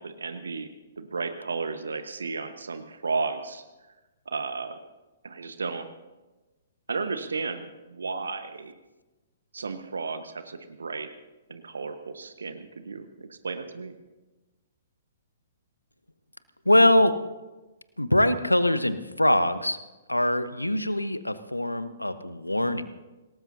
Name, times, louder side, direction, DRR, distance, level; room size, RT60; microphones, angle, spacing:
voice 1, 0.0-3.6 4.3-4.8 5.2-5.9 6.9-8.8 9.5-11.1 11.5-14.0, right 4 dB, 70° right, 8 dB, 1.3 m, -33 dB
voice 2, 16.6-17.2 18.0-19.8 20.1-22.8, left 1 dB, 90° left, 12 dB, 1.1 m, -23 dB
26.5 x 18.5 x 2.8 m, 1.1 s
figure-of-eight pair, 120°, 0 cm